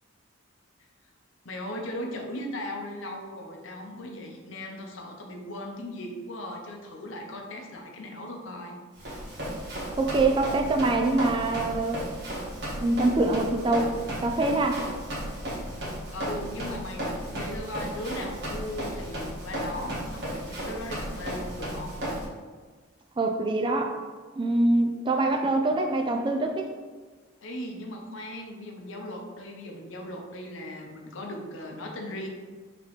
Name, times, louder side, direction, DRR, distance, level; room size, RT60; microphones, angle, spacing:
voice 1, 1.4-8.8 16.1-22.0 27.4-32.3, left 1 dB, 70° left, 2 dB, 0.7 m, -38 dB
Run, 9.0-22.2, equal, 50° right, 1.2 m, -34 dB
voice 2, 10.0-12.0 12.8-14.9 23.2-24.0 24.3-26.7, right 2 dB, 25° right, 3 dB, 0.3 m, -24 dB
5.7 x 3.0 x 3.1 m, 1.4 s
head